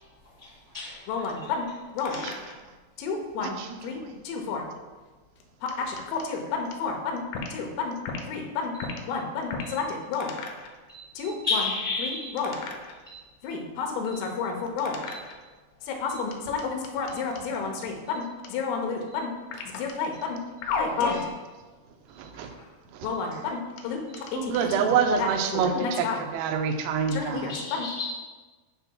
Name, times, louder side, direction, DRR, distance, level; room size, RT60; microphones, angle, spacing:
voice 1, 0.4-1.0 2.0-2.3 8.7-8.9 9.6-9.8 10.9-12.4 13.0-13.2 14.1-14.2 15.1-15.2 16.1-16.2 19.1-19.2 21.0-21.2 24.1-24.2 25.7-25.9 27.5-28.0, left 3 dB, 70° right, -8 dB, 0.8 m, -33 dB
voice 2, 1.1-1.7 2.0-2.5 3.0-3.6 3.8-4.0 4.3-4.6 5.8-7.2 7.5-8.0 8.3-8.7 9.1-10.7 11.2-11.6 12.0-13.0 13.4-15.3 15.8-21.3 23.0-24.9 25.2-26.2 27.1-27.9, left 5 dB, 90° left, 2 dB, 3.6 m, -31 dB
voice 3, 2.1-2.4 3.4-4.2 22.2-22.5 22.9-23.1 24.3-27.6, right 6 dB, 85° right, 5 dB, 3.3 m, -27 dB
11.5 x 5.8 x 2.3 m, 1.3 s
omnidirectional pair, 5.7 m